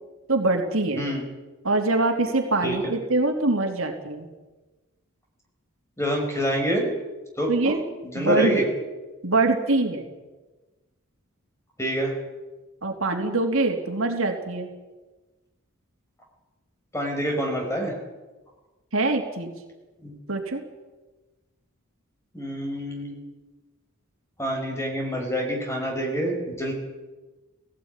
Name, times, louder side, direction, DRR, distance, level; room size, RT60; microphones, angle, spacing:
voice 1, 0.3-1.0 1.6-4.3 7.5-7.8 8.1-8.5 9.2-10.0 12.8-14.7 18.9-19.5 20.3-20.6, right 2 dB, 65° right, 3 dB, 3.0 m, -24 dB
voice 2, 2.6-3.0 6.0-6.9 7.4-7.8 8.0-8.6 11.8-12.1 16.9-17.9 20.0-20.2 22.3-23.2 24.4-26.7, right 1 dB, 15° left, 2 dB, 5.5 m, -26 dB
17.5 x 17.0 x 9.7 m, 1.2 s
head